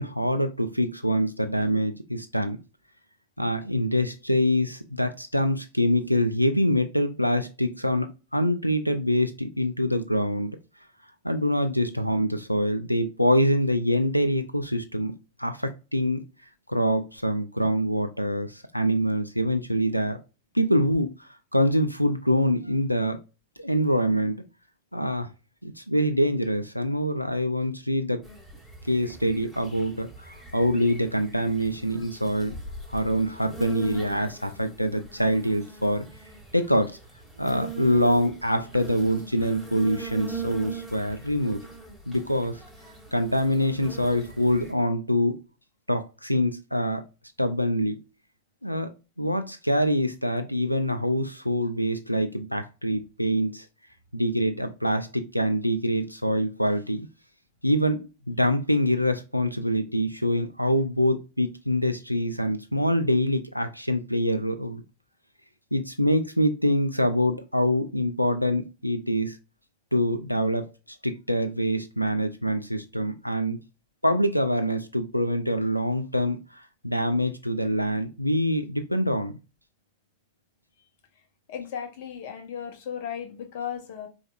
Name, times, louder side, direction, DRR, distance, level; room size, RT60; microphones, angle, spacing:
voice 1, 0.0-2.6 3.4-10.6 11.2-15.1 15.4-16.2 16.7-20.2 20.5-23.2 23.6-24.4 24.9-25.3 25.6-28.2 28.8-30.1 30.5-32.6 32.9-36.1 36.5-37.0 37.4-41.7 42.1-42.6 43.1-45.4 45.9-47.0 47.4-48.0 48.6-48.9 49.2-53.7 54.1-57.1 57.6-64.8 65.7-69.4 69.9-70.7 71.0-73.6 74.0-79.4, equal, 90° left, 0.4 m, -25 dB
sound 1, 28.2-44.7, right 4 dB, 5° left, 1.9 m, -41 dB
voice 2, 81.5-84.1, left 8 dB, 50° left, 1.1 m, -35 dB
4.9 x 3.1 x 2.3 m
figure-of-eight pair, 90°, 0 cm